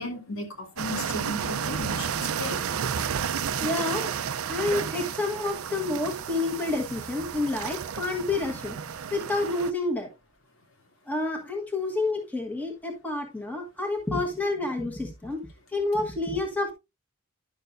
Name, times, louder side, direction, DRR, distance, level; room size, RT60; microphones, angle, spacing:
voice 1, 0.0-2.6, left 2 dB, 70° left, 2.4 m, -35 dB
sound 1, 0.8-9.7, right 7 dB, 85° right, 0.5 m, -32 dB
voice 2, 3.6-4.1 4.5-8.8 9.1-10.1 11.1-15.4 15.7-16.7, left 2 dB, 5° left, 1.3 m, -29 dB
10.5 x 6.6 x 2.5 m
head